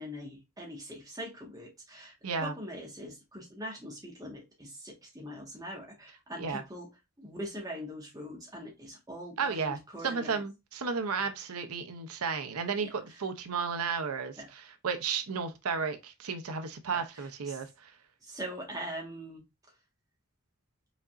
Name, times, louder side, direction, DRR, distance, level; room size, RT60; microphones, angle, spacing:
voice 1, 0.0-6.9 7.2-10.4 12.8-13.2 14.4-14.5 16.9-17.6 18.2-19.4, equal, 15° right, 1.6 m, -42 dB
voice 2, 2.2-2.5 6.4-6.6 9.4-9.8 10.0-14.4 14.8-17.9, right 5 dB, 85° right, 0.8 m, -33 dB
5.1 x 3.9 x 2.5 m
head